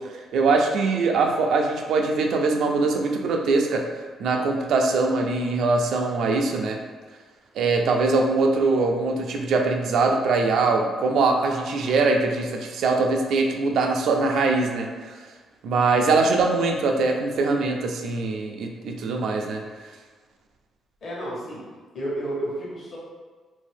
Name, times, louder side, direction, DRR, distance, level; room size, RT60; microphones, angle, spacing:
voice 1, 0.3-3.8 4.2-6.8 7.6-15.1 15.6-19.6, right 3 dB, 70° right, 2 dB, 0.4 m, -22 dB
voice 2, 21.0-21.6 21.9-23.0, right 1 dB, 50° left, -5 dB, 1.1 m, -31 dB
2.7 x 2.6 x 3.4 m, 1.4 s
cardioid pair, 135°, 0 cm